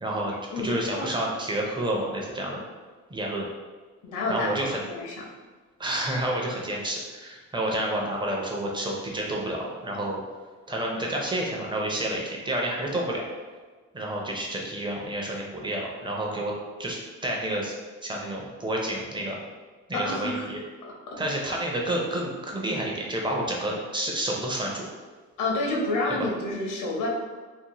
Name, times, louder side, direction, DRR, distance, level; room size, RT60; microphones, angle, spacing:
voice 1, 0.0-2.6 3.1-3.5 4.3-4.8 5.8-10.2 10.7-13.2 13.9-16.5 16.8-17.7 18.0-19.4 19.9-20.6 21.2-24.9 26.2-26.3, right 1 dB, 15° right, -2 dB, 0.6 m, -29 dB
voice 2, 0.5-1.1 4.0-4.6 4.9-5.2 19.9-20.5 20.8-21.2 25.4-27.1, left 2 dB, 85° left, -2 dB, 0.7 m, -29 dB
2.6 x 2.1 x 2.9 m, 1.4 s
cardioid pair, 90°, 30 cm